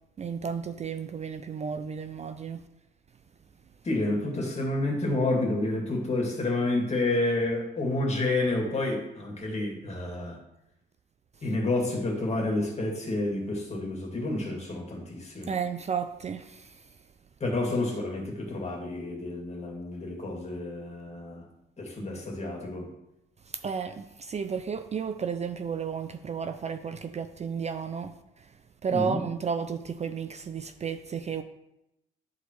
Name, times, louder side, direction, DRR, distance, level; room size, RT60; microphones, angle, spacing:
voice 1, 0.2-2.6 15.5-16.9 23.6-28.5 28.8-31.4, right 6 dB, 35° right, 0.4 m, -33 dB
voice 2, 3.8-10.4 11.4-15.5 17.4-21.4 21.8-22.9 28.9-29.2, left 2 dB, 35° left, 2.1 m, -29 dB
12.0 x 4.1 x 3.1 m
cardioid pair, 90°, 20 cm